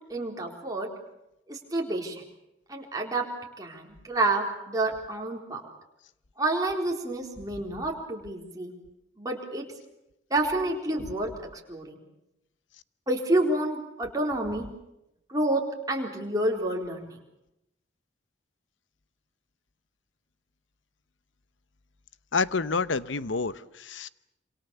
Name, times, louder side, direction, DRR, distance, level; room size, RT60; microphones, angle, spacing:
voice 1, 0.1-0.9 1.5-2.2 2.7-3.3 3.6-5.6 6.4-8.7 9.2-9.6 10.3-12.0 13.1-14.7 15.3-17.2, right 2 dB, 20° right, 0 dB, 4.1 m, -29 dB
voice 2, 22.3-24.1, left 4 dB, 85° left, 16 dB, 0.9 m, -28 dB
27.0 x 27.0 x 7.1 m, 0.86 s
head